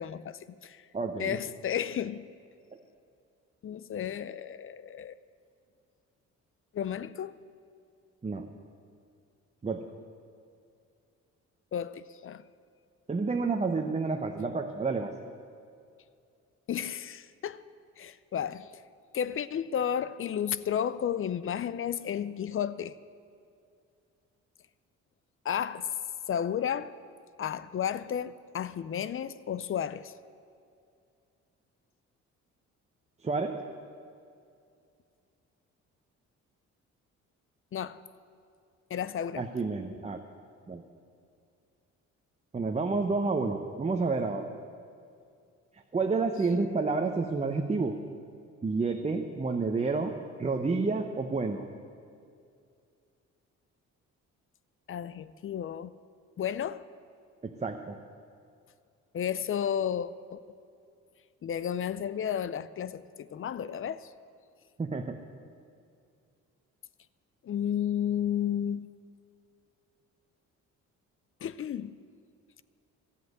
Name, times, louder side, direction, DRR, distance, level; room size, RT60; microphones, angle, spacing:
voice 1, 0.0-0.8 1.2-2.2 3.6-5.2 6.7-7.4 11.7-12.4 16.7-17.6 18.0-18.7 19.1-22.9 25.4-25.9 26.3-26.9 27.4-30.1 37.7-38.0 38.9-39.5 54.9-55.9 56.4-56.8 59.1-60.4 61.4-64.1 67.4-68.9 71.4-72.0, left 9 dB, 45° left, 0.5 m, -32 dB
voice 2, 0.9-1.4 8.2-8.5 9.6-9.8 13.1-15.1 33.2-33.6 39.4-40.2 40.7-40.8 42.5-44.5 45.9-47.9 48.6-50.1 50.4-51.6 57.4-58.0 64.8-65.2, right 4 dB, 20° right, 0.9 m, -29 dB
13.0 x 7.9 x 9.5 m
cardioid pair, 90°, 30 cm